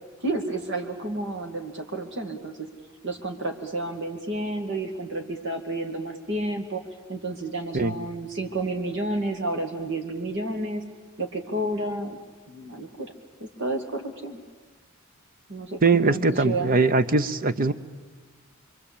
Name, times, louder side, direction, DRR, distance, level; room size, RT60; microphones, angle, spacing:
voice 1, 0.2-2.7 3.0-6.8 7.1-10.8 11.2-12.2 12.5-13.1 13.4-14.4 15.5-16.8, right 2 dB, 60° right, 4 dB, 2.4 m, -31 dB
voice 2, 15.8-17.7, right 3 dB, 45° right, 13 dB, 0.9 m, -21 dB
27.0 x 23.5 x 8.7 m, 1.4 s
head